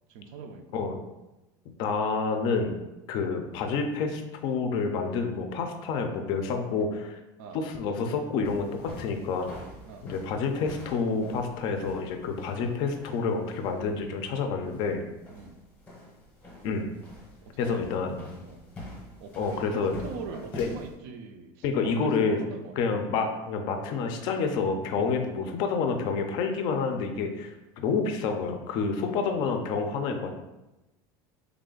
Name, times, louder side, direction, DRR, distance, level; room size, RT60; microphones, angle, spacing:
voice 1, 0.1-0.8 7.4-7.6 9.9-10.1 15.4-15.5 17.4-18.0 18.4-18.6 19.2-23.0 29.1-29.2, right 5 dB, 60° right, 7 dB, 0.4 m, -43 dB
voice 2, 1.8-2.8 3.1-7.2 7.5-9.5 10.1-15.0 16.6-16.9 17.6-18.2 19.4-19.9 20.6-20.7 21.6-22.4 22.8-30.3, left 4 dB, 45° left, 5 dB, 0.4 m, -28 dB
sound 1, 8.4-20.9, left 1 dB, 15° left, 0.7 m, -45 dB
3.3 x 2.4 x 3.7 m, 1.0 s
cardioid pair, 170°, 11 cm